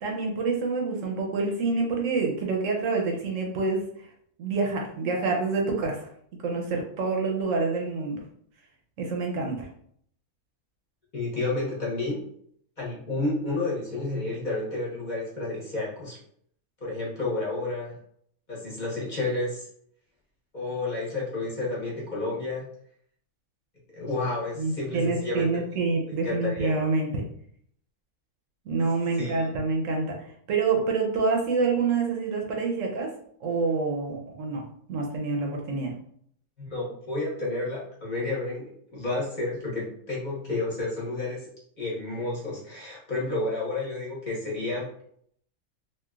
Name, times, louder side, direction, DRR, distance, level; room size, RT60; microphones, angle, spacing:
voice 1, 0.0-4.1 4.4-6.1 6.4-8.2 9.0-9.7 24.6-27.1 28.7-33.1 33.4-35.9, right 4 dB, 70° right, 0 dB, 0.9 m, -27 dB
voice 2, 11.1-12.2 12.8-16.2 16.8-18.0 18.5-19.7 20.5-22.7 23.9-25.5 26.2-26.7 29.2-29.3 36.6-41.4 41.8-44.9, left 2 dB, 35° left, -6 dB, 1.0 m, -30 dB
3.0 x 2.7 x 2.3 m, 0.66 s
omnidirectional pair, 1.5 m